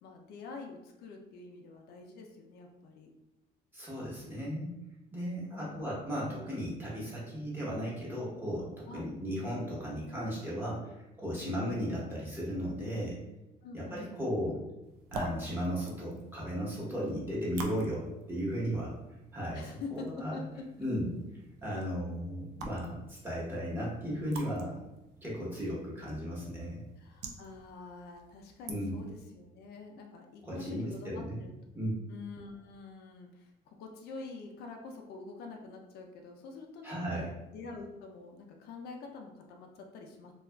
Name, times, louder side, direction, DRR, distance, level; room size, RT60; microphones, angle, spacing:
voice 1, 0.0-3.1 5.4-5.9 8.9-9.1 11.4-11.7 13.6-14.3 19.5-20.6 27.0-31.5 32.1-40.3, left 4 dB, 75° left, 2 dB, 0.4 m, -46 dB
voice 2, 3.7-4.7 5.1-13.2 13.7-14.6 15.1-18.9 19.3-20.4 20.8-21.1 21.6-24.8 25.2-26.8 28.7-29.0 30.4-31.4 31.7-32.0 36.8-37.3, equal, 10° right, -6 dB, 1.0 m, -35 dB
sound 1, 14.8-29.2, right 3 dB, 85° right, 0.4 m, -48 dB
2.7 x 2.3 x 2.2 m, 0.96 s
cardioid pair, 110°, 17 cm